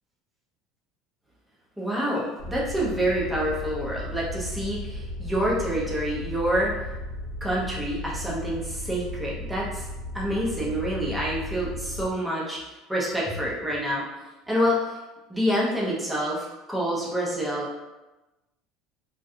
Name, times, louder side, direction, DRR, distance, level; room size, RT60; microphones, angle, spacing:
voice 1, 1.8-6.7 7.4-9.8 10.1-12.6 12.9-14.0 14.5-14.9 15.3-17.8, equal, 5° right, -5 dB, 0.5 m, -27 dB
sound 1, 2.4-12.1, left 1 dB, 65° right, 0.8 m, -35 dB
2.6 x 2.2 x 2.4 m, 1.1 s
cardioid pair, 150°, 0 cm